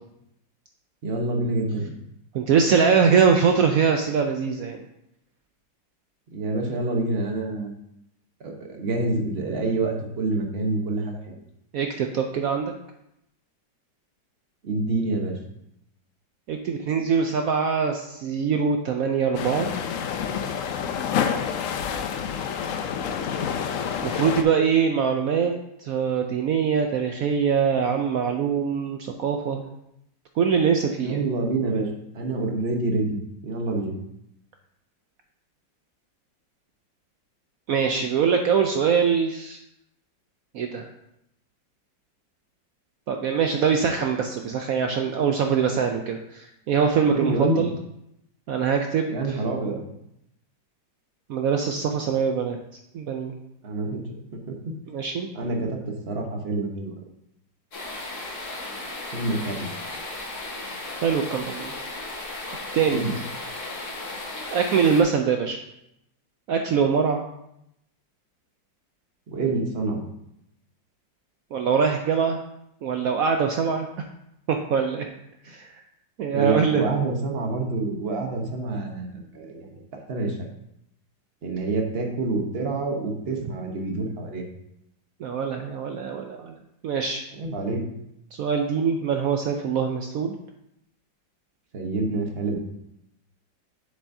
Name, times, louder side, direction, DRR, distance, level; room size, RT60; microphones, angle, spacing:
voice 1, 1.0-2.0 6.3-7.7 8.4-11.3 14.6-15.4 31.0-34.0 47.1-47.7 49.1-49.8 53.6-54.0 54.3-54.7 55.3-56.9 59.1-59.7 62.9-63.1 69.3-70.0 76.3-79.8 80.1-80.4 81.4-84.5 87.4-87.8 91.7-92.6, right 2 dB, 40° right, 2 dB, 1.0 m, -27 dB
voice 2, 2.3-4.8 11.7-12.7 16.5-19.7 24.0-25.5 25.8-29.6 30.4-31.2 37.7-39.6 40.5-40.9 43.1-47.7 48.5-49.4 51.3-52.6 52.9-53.4 54.9-55.3 61.0-61.7 62.7-63.0 64.5-65.6 66.5-67.3 71.5-72.4 72.8-74.1 74.5-75.1 75.4-75.8 76.2-76.9 85.2-86.6 86.8-87.2 88.4-90.3, right 6 dB, 75° right, 4 dB, 0.8 m, -23 dB
sound 1, 19.3-24.4, left 7 dB, 75° left, 0.7 m, -28 dB
sound 2, 57.7-65.0, left 2 dB, 45° left, 1.5 m, -35 dB
7.7 x 6.8 x 2.7 m, 0.79 s
omnidirectional pair, 2.0 m